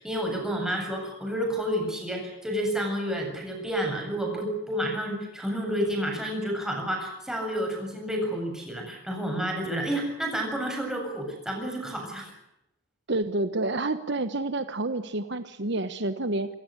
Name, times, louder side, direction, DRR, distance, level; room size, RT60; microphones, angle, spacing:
voice 1, 0.0-12.3, equal, 5° right, 1 dB, 7.8 m, -30 dB
voice 2, 13.1-16.5, right 2 dB, 60° right, 11 dB, 1.3 m, -29 dB
27.5 x 16.5 x 9.8 m, 0.84 s
head